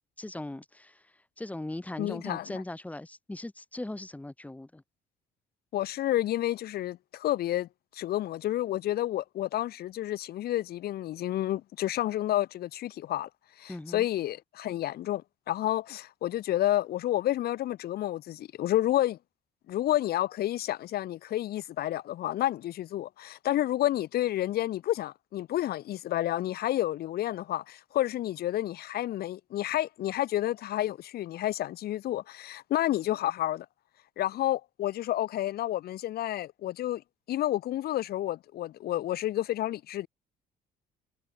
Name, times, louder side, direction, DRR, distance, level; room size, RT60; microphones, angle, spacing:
voice 1, 0.2-1.0 1.4-4.8 13.7-14.1, left 2 dB, 10° left, 2.0 m, -39 dB
voice 2, 2.0-2.6 5.7-13.3 13.6-19.2 19.7-33.7 34.2-37.0 37.3-40.1, left 13 dB, 70° left, 2.4 m, -30 dB
cardioid pair, 110°, 17 cm